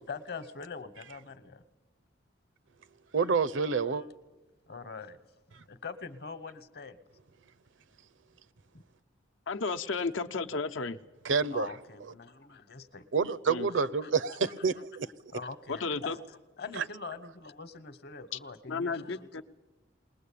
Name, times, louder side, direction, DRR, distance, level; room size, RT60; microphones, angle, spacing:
voice 1, 0.1-1.6 4.0-4.1 4.7-5.2 5.7-7.0 11.5-13.1 13.7-14.1 15.3-19.4, left 4 dB, 55° left, 1.1 m, -43 dB
voice 2, 3.1-4.0 5.5-5.6 11.2-11.7 13.1-15.1 16.8-16.9, right 5 dB, 80° right, 0.7 m, -28 dB
voice 3, 9.5-11.0 13.5-13.7 15.7-16.2 18.7-19.4, left 4 dB, 85° left, 0.8 m, -33 dB
21.0 x 20.0 x 8.5 m
head